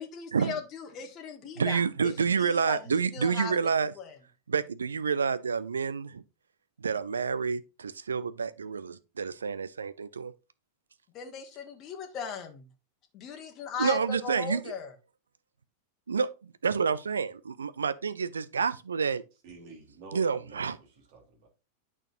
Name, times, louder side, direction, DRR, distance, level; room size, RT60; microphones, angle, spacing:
voice 1, 0.0-2.1 2.4-3.7 4.0-4.2 11.1-12.7 13.1-14.9, left 5 dB, 35° left, 1.3 m, -38 dB
voice 2, 1.6-3.9 4.5-6.2 6.8-10.3 13.8-14.6 16.1-16.3 16.6-19.2 20.1-20.8, right 6 dB, 70° right, 0.5 m, -28 dB
voice 3, 19.4-21.5, right 3 dB, 50° right, 3.3 m, -49 dB
9.0 x 6.2 x 2.6 m
figure-of-eight pair, 90°, 0 cm